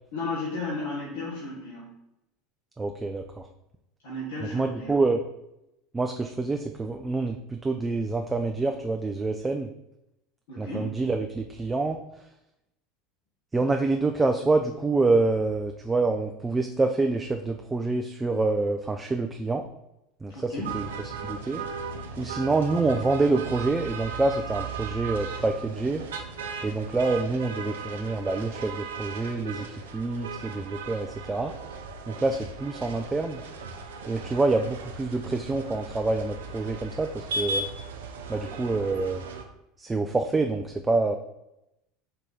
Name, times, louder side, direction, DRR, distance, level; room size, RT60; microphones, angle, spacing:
voice 1, 0.1-1.9 4.0-5.0 10.5-10.9 20.3-20.8, left 2 dB, 75° left, -6 dB, 1.1 m, -34 dB
voice 2, 2.8-3.5 4.4-5.2 5.9-9.7 10.6-12.0 13.5-19.6 20.2-20.9 21.2-21.6 22.2-26.0 26.6-29.7 29.9-31.5 32.1-33.4 34.1-37.7 38.3-39.2 39.8-41.2, right 3 dB, 15° right, 5 dB, 0.4 m, -26 dB
sound 1, 20.6-39.4, right 4 dB, 80° right, 0.5 m, -37 dB
4.6 x 2.7 x 3.9 m, 0.87 s
hypercardioid pair, 85°, 0 cm